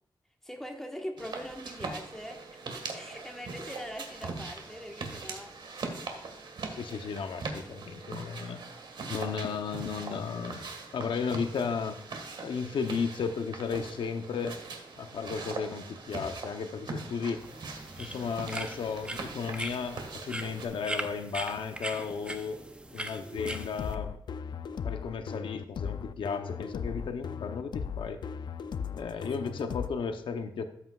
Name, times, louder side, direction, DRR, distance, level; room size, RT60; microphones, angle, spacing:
voice 1, 0.4-5.5, equal, 5° left, 1 dB, 1.4 m, -42 dB
sound 1, 1.2-20.7, right 4 dB, 75° right, 1.7 m, -41 dB
voice 2, 6.7-8.6 9.1-10.7 10.9-12.0 12.4-14.6 15.0-17.4 18.0-22.6 22.9-24.1 24.8-28.2 28.9-30.6, left 5 dB, 85° left, 7 dB, 0.8 m, -34 dB
sound 2, 17.4-23.9, right 1 dB, 15° right, 0.7 m, -40 dB
sound 3, 23.4-29.9, left 6 dB, 65° left, 0.5 m, -37 dB
13.0 x 8.0 x 2.4 m, 0.79 s
wide cardioid pair, 170°, 8 cm